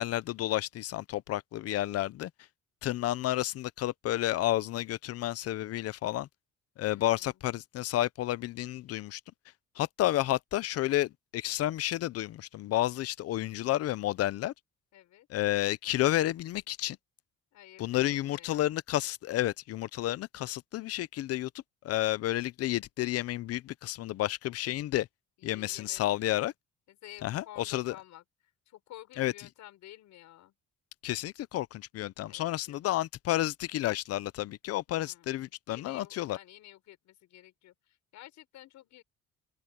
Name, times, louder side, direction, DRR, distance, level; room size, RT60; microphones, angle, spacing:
voice 1, 0.0-2.3 2.8-6.3 6.8-9.2 9.8-14.5 15.3-17.0 17.8-21.5 21.8-25.1 25.4-26.5 27.2-27.9 29.2-29.3 31.0-36.4, left 14 dB, 55° left, 0.6 m, -31 dB
voice 2, 6.9-7.4 14.9-15.3 17.5-18.8 25.4-26.4 26.9-30.5 32.2-32.8 34.9-35.4 35.7-39.0, left 14 dB, 70° left, 6.7 m, -52 dB
cardioid pair, 170°, 30 cm